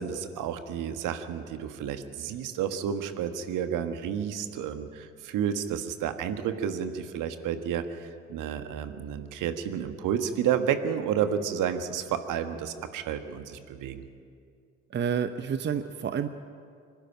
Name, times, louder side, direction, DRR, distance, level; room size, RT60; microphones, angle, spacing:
voice 1, 0.0-14.0, right 8 dB, 55° right, 8 dB, 1.6 m, -31 dB
voice 2, 14.9-16.3, right 7 dB, 30° right, 10 dB, 0.8 m, -29 dB
26.0 x 12.0 x 9.0 m, 2.3 s
figure-of-eight pair, 55°, 37 cm